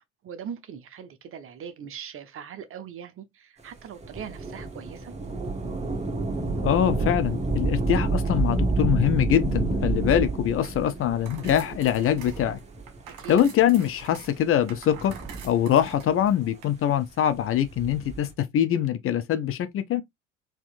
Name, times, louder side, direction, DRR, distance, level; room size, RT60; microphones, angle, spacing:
voice 1, 0.0-5.1 13.1-13.4, right 8 dB, 35° right, 0.7 m, -41 dB
Thunder / Rain, 4.0-13.0 13.7-13.8 14.7-16.0 17.5-18.3, right 3 dB, 20° right, 1.2 m, -29 dB
voice 2, 6.6-12.6 13.3-15.1 15.4-20.0, left 10 dB, 35° left, 0.6 m, -23 dB
sound 1, 10.5-16.7, right 7 dB, 55° right, 1.3 m, -47 dB
4.3 x 2.8 x 2.5 m
figure-of-eight pair, 60°, 38 cm